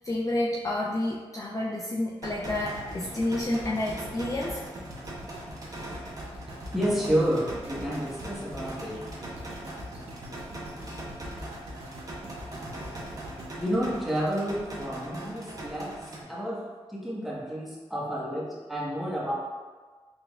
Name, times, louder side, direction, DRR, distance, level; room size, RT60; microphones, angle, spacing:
voice 1, 0.0-4.6, left 1 dB, 30° left, -3 dB, 0.4 m, -29 dB
sound 1, 2.2-16.2, right 1 dB, 35° right, 1.0 m, -41 dB
sound 2, 2.4-14.6 15.2-15.3, equal, 65° right, 0.7 m, -44 dB
voice 2, 6.7-9.0 13.6-15.9 16.3-16.6 16.9-19.3, equal, ahead, -6 dB, 1.3 m, -30 dB
3.9 x 3.4 x 2.4 m, 1.4 s
cardioid pair, 50°, 11 cm